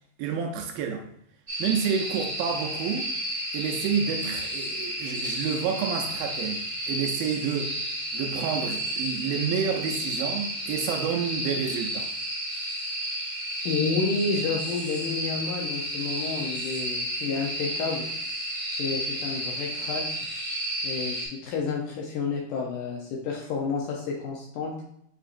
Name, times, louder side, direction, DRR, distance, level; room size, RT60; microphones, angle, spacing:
voice 1, 0.2-1.1 1.6-3.1 3.5-12.1, right 7 dB, 80° right, 3 dB, 2.2 m, -29 dB
sound 1, 1.5-21.3, right 1 dB, 25° right, 1.2 m, -32 dB
voice 2, 13.7-18.1 18.7-20.0 20.8-24.7, left 4 dB, 75° left, -1 dB, 1.9 m, -30 dB
7.6 x 2.7 x 2.5 m, 0.71 s
omnidirectional pair, 4.2 m